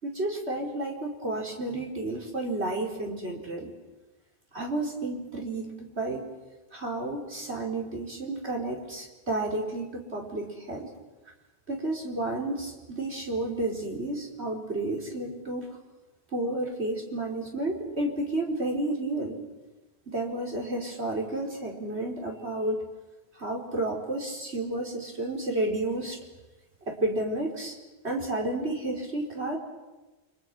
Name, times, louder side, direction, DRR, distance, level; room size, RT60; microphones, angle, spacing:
voice 1, 0.0-3.7 4.5-6.4 6.7-10.9 11.7-15.7 16.3-19.4 20.1-22.8 23.3-26.2 26.9-27.8 28.0-29.6, right 2 dB, 85° right, 0 dB, 4.8 m, -31 dB
29.5 x 26.0 x 6.2 m, 1.1 s
omnidirectional pair, 1.1 m